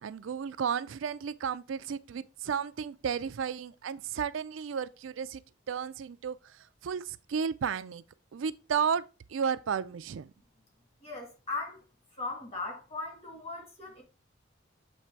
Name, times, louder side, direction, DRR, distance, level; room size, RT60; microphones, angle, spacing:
voice 1, 0.0-5.4 5.7-6.4 6.8-8.0 8.3-9.0 9.3-10.3, right 7 dB, 85° right, 0.4 m, -33 dB
voice 2, 11.0-11.8 12.1-14.0, left 3 dB, 30° left, 2.3 m, -38 dB
7.4 x 3.3 x 4.5 m
head